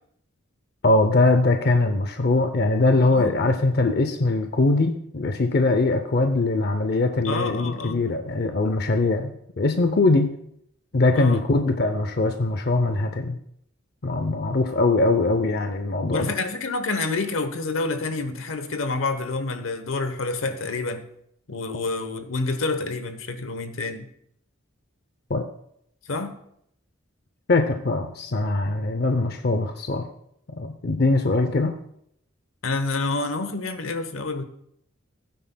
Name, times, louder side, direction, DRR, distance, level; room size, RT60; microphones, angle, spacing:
voice 1, 0.8-10.3 10.9-13.4 14.0-16.3 25.3-25.4 27.5-30.1 30.6-31.7, left 2 dB, 50° left, 6 dB, 0.5 m, -22 dB
voice 2, 3.1-3.6 7.2-8.0 11.1-11.4 16.1-21.1 21.5-24.1 26.1-26.4 32.6-34.4, left 3 dB, 75° left, 10 dB, 0.9 m, -28 dB
16.5 x 9.3 x 2.2 m, 0.71 s
head